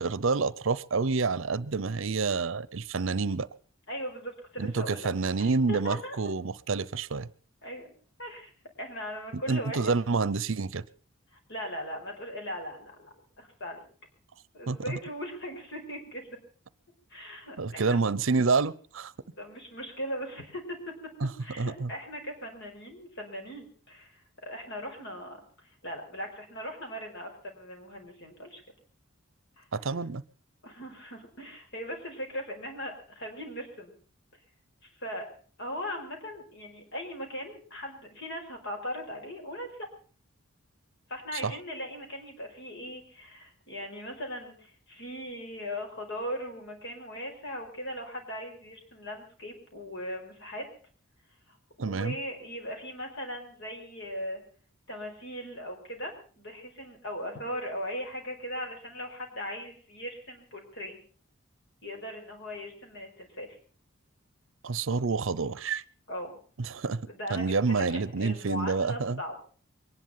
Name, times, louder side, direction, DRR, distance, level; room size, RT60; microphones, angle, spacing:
voice 1, 0.0-3.5 4.6-7.3 9.5-10.8 14.7-14.9 17.6-19.1 21.2-21.3 21.6-21.9 29.7-30.2 41.3-41.5 51.8-52.2 64.6-65.8 66.6-67.0 67.3-69.2, right 4 dB, 65° right, 0.7 m, -28 dB
voice 2, 3.9-5.1 5.4-6.2 7.6-7.9 8.2-8.5 8.8-10.0 11.3-13.8 14.5-16.4 17.1-18.0 19.2-20.8 21.4-25.4 25.8-28.6 29.6-29.9 30.6-33.9 34.8-35.3 35.6-39.9 41.1-50.6 51.5-51.6 51.8-54.4 54.9-61.0 61.8-63.5 66.1-66.4 67.0-69.4, equal, 60° left, 5.1 m, -39 dB
23.0 x 11.0 x 5.6 m
head